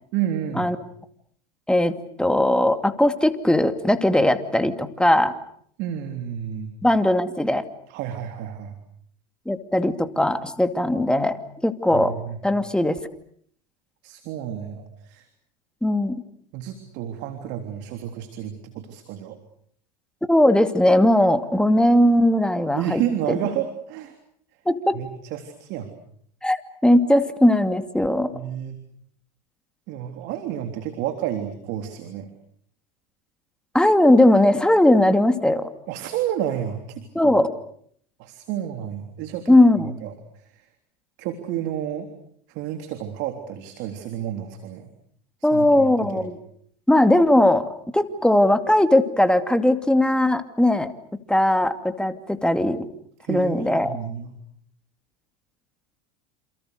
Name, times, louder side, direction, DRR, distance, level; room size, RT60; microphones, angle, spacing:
voice 1, 0.1-0.7 5.8-6.7 7.9-8.8 11.9-12.4 14.0-15.3 16.5-19.4 22.7-24.1 24.9-25.9 28.3-28.8 29.9-32.3 35.9-37.3 38.2-40.1 41.2-42.1 42.5-44.9 45.5-46.4 53.2-54.3, right 10 dB, 60° right, 7 dB, 3.5 m, -30 dB
voice 2, 1.7-5.3 6.8-7.6 9.5-12.1 12.4-13.0 15.8-16.2 20.3-23.0 24.7-25.0 26.4-28.3 33.7-35.7 37.1-37.5 39.5-40.0 45.4-46.4 46.9-50.9 51.3-52.9 53.3-54.0, left 1 dB, 5° left, 8 dB, 2.5 m, -19 dB
28.5 x 28.0 x 6.7 m, 0.64 s
hypercardioid pair, 90°, 21 cm